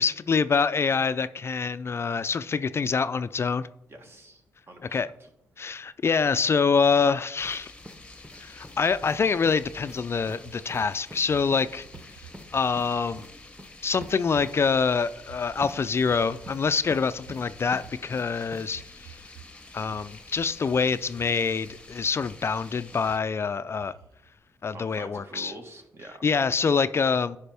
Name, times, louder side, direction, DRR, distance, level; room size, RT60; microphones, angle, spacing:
voice 1, 0.0-3.7 4.9-5.1 5.6-7.7 8.4-11.9 12.5-13.2 13.8-19.2 19.7-23.9 24.6-25.5 26.2-27.4, left 5 dB, 40° left, 14 dB, 0.3 m, -25 dB
voice 2, 3.9-5.3 24.7-26.3, right 1 dB, 40° right, 4 dB, 1.6 m, -46 dB
sound 1, 7.4-23.2, left 2 dB, 15° left, 0.9 m, -48 dB
sound 2, 7.4-7.6 7.8-8.8 9.0-9.2 9.4-9.6 9.8-10.0 10.3-10.4 10.7-10.8 11.1-11.2 11.5-11.6 11.9-12.5 12.8-12.9 13.2-13.3 13.6-13.7 14.0-14.1 14.4-14.5 15.6-15.7 16.0-16.6 16.9-17.4 17.7-18.2 18.5-18.6, equal, 5° right, 1.2 m, -45 dB
sound 3, 10.4-12.7 12.9-13.3 13.9-14.8 15.2-18.1 18.7-19.5 19.8-20.9 21.1-21.8 22.1-22.7 23.1-23.2 23.8-24.4, right 10 dB, 85° right, 0.5 m, -50 dB
9.8 x 5.0 x 3.4 m, 0.83 s
supercardioid pair, 50°, 6 cm